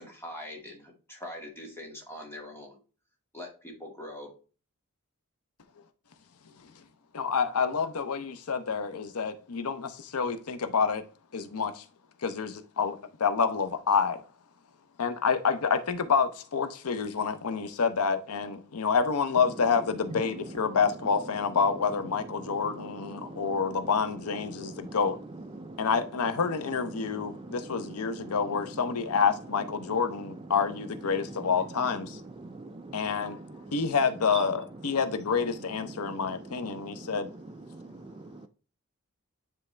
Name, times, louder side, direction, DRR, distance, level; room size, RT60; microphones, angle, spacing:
voice 1, 0.0-2.8 3.3-4.3, left 1 dB, 10° left, 1.9 m, -43 dB
voice 2, 7.1-11.0 11.3-11.8 12.2-14.2 15.0-25.2 25.8-32.2 32.9-33.4 33.7-37.3, left 5 dB, 85° left, 0.7 m, -28 dB
voice 3, 22.4-23.6 24.4-25.0 25.6-25.9 27.0-28.4 32.4-33.8 35.9-36.2 36.7-37.1 37.7-38.5, right 2 dB, 25° right, 0.4 m, -44 dB
9.7 x 3.5 x 3.3 m
head